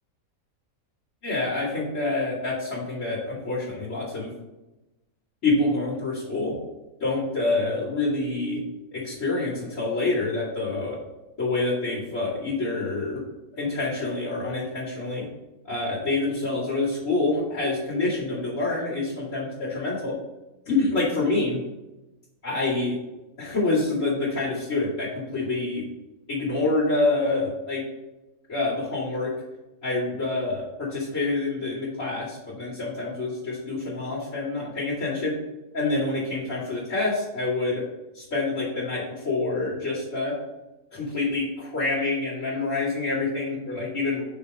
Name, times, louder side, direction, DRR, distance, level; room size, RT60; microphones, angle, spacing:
voice 1, 1.2-4.3 5.4-6.5 7.0-8.6 8.9-11.0 11.4-13.2 13.5-15.2 15.6-20.1 20.7-21.6 22.4-22.9 23.4-25.8 26.3-27.8 28.5-29.3 29.8-35.4 35.7-37.8 38.1-40.4 40.9-44.2, left 2 dB, 60° left, -9 dB, 2.8 m, -27 dB
6.5 x 3.5 x 6.0 m, 1.0 s
omnidirectional pair, 1.5 m